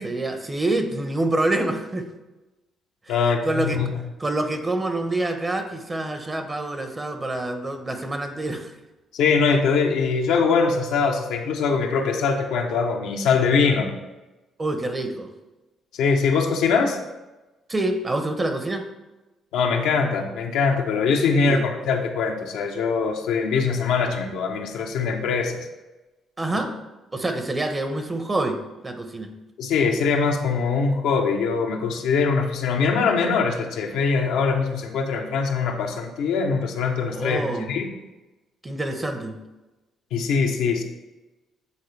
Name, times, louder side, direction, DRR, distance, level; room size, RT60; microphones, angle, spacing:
voice 1, 0.0-2.1 3.1-3.8 4.2-8.7 14.6-15.3 17.7-18.8 21.4-21.7 26.4-26.7 27.1-28.6 28.8-29.3 37.1-37.7 38.6-39.4, right 2 dB, 25° right, 7 dB, 0.9 m, -26 dB
voice 2, 3.1-3.9 9.1-13.9 15.9-17.0 19.5-25.7 26.5-26.6 29.6-37.9 40.1-40.8, left 5 dB, 80° left, 2 dB, 0.7 m, -22 dB
8.6 x 3.9 x 3.3 m, 1.1 s
supercardioid pair, 60°, 0 cm